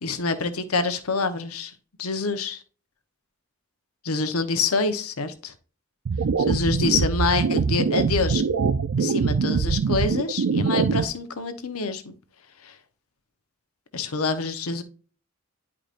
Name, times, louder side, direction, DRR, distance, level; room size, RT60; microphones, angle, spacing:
voice 1, 0.0-1.7 2.0-2.6 4.0-5.5 6.5-8.4 9.0-12.1 12.6-12.8 13.9-14.8, left 4 dB, 80° left, 0.9 m, -26 dB
sound 1, 6.0-11.0, right 5 dB, 70° right, 0.4 m, -23 dB
10.0 x 4.8 x 2.5 m
head